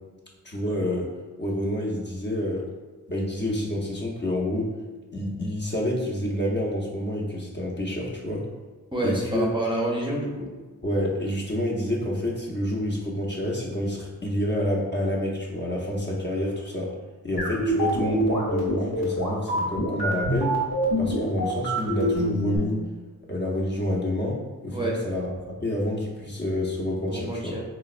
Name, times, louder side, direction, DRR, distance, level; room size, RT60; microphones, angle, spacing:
voice 1, 0.4-1.1 1.4-2.7 3.1-4.7 5.1-8.5 9.0-9.5 10.8-16.9 17.2-20.6 21.0-22.8 23.3-27.6, left 1 dB, 30° left, -3 dB, 0.6 m, -28 dB
voice 2, 8.9-10.5 24.7-25.0 27.1-27.6, right 1 dB, 15° right, -4 dB, 0.5 m, -28 dB
sound 1, 17.4-22.6, equal, 90° left, 1.0 m, -26 dB
3.8 x 2.0 x 2.4 m, 1.3 s
cardioid pair, 60°, 35 cm